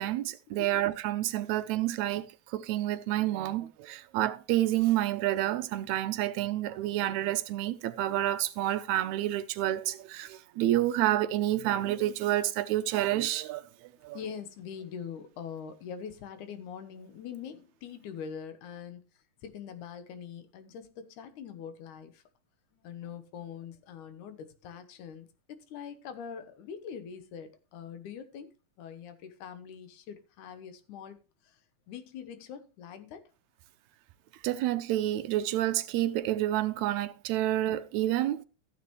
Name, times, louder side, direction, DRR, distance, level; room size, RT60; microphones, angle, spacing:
voice 1, 0.0-13.6 14.0-14.2 34.4-38.4, right 14 dB, 75° right, 1.8 m, -29 dB
voice 2, 14.1-19.0 19.4-22.2 22.7-31.6 31.9-33.2, left 7 dB, 75° left, 2.5 m, -43 dB
14.0 x 7.7 x 3.1 m
omnidirectional pair, 3.6 m